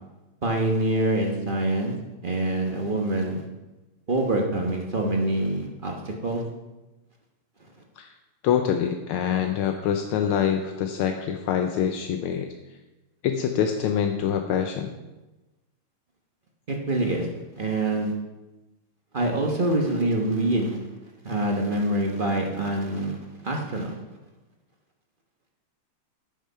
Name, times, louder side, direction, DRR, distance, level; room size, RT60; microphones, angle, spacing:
voice 1, 0.4-2.0 2.2-3.4 4.1-6.4 16.7-17.3 17.5-18.1 19.1-20.8 21.2-24.0, right 1 dB, 35° right, 1 dB, 0.9 m, -25 dB
voice 2, 8.4-12.5 13.2-14.9, left 8 dB, 80° left, 5 dB, 1.5 m, -25 dB
10.0 x 6.3 x 5.6 m, 1.1 s
omnidirectional pair, 2.4 m